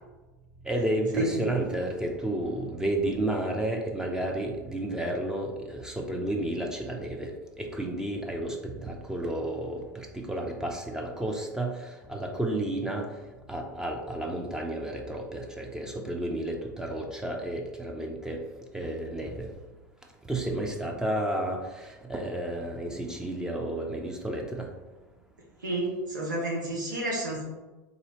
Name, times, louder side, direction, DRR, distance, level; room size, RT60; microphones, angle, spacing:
voice 1, 0.6-13.2 13.5-18.4 18.7-19.5 20.3-24.7, right 1 dB, 5° right, 1 dB, 0.5 m, -32 dB
voice 2, 25.6-27.4, right 1 dB, 85° right, -3 dB, 0.9 m, -30 dB
3.9 x 2.7 x 2.9 m, 1.2 s
hypercardioid pair, 85°, 10 cm